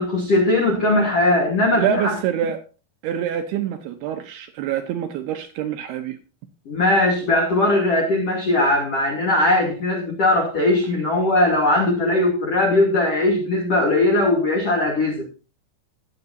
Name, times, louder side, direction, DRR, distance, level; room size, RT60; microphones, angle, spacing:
voice 1, 0.0-2.1 6.7-15.2, left 2 dB, 80° left, 1.3 m, -19 dB
voice 2, 1.8-2.6 3.0-6.2, right 10 dB, 80° right, 2.4 m, -26 dB
18.5 x 7.7 x 2.7 m
omnidirectional pair, 5.3 m